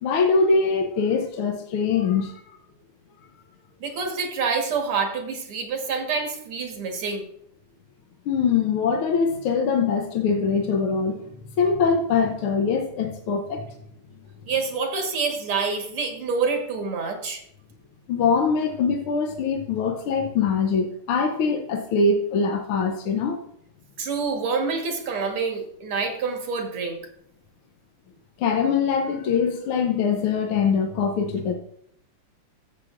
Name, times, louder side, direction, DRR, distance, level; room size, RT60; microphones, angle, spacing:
voice 1, 0.0-2.4 8.2-11.2 11.6-13.7 18.1-23.4 28.4-31.5, left 5 dB, 80° left, 4 dB, 1.7 m, -23 dB
voice 2, 3.8-7.2 14.5-17.4 24.0-27.0, right 5 dB, 85° right, 3 dB, 2.5 m, -27 dB
13.5 x 7.7 x 2.5 m, 0.71 s
omnidirectional pair, 2.4 m